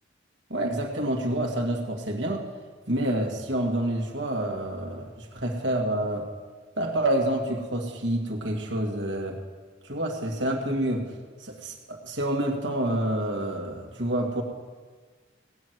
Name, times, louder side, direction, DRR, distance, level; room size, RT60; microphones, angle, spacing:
voice 1, 0.5-2.5 2.9-6.3 6.8-9.4 9.8-11.1 11.4-14.4, right 1 dB, 80° right, 1 dB, 2.2 m, -28 dB
17.5 x 6.3 x 9.4 m, 1.5 s
head